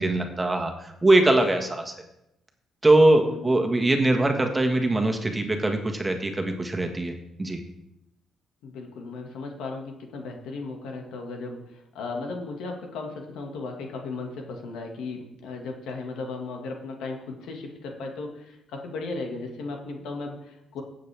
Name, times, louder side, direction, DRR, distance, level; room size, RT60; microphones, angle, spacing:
voice 1, 0.0-1.9 2.8-7.6, right 2 dB, 20° right, 4 dB, 1.6 m, -22 dB
voice 2, 3.2-3.7 8.6-20.8, left 3 dB, 85° left, 2 dB, 1.9 m, -36 dB
16.5 x 7.5 x 3.5 m, 0.84 s
cardioid pair, 90°, 0 cm